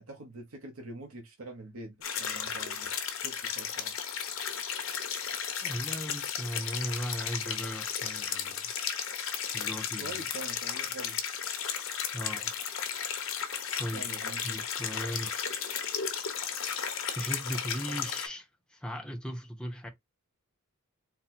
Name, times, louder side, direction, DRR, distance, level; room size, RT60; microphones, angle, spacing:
voice 1, 0.0-2.9 3.2-3.9 10.0-11.2 13.9-14.6, right 2 dB, 70° right, 0.9 m, -44 dB
sound 1, 2.0-18.3, left 7 dB, 60° left, 0.9 m, -34 dB
voice 2, 5.6-8.7 9.5-10.2 12.1-12.5 13.8-14.1 14.4-15.3 17.1-19.9, equal, 5° left, 0.7 m, -37 dB
4.1 x 2.1 x 4.2 m
head